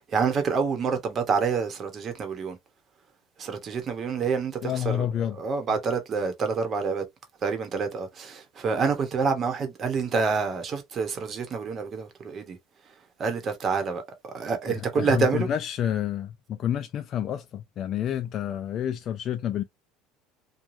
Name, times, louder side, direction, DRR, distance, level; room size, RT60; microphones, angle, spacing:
voice 1, 0.1-2.6 3.4-5.1 5.4-7.0 7.4-12.6 13.2-15.5, right 5 dB, 35° right, 0.9 m, -27 dB
voice 2, 4.6-5.4 14.7-19.6, left 10 dB, 45° left, 0.3 m, -29 dB
3.2 x 2.2 x 2.5 m
cardioid pair, 130°, 0 cm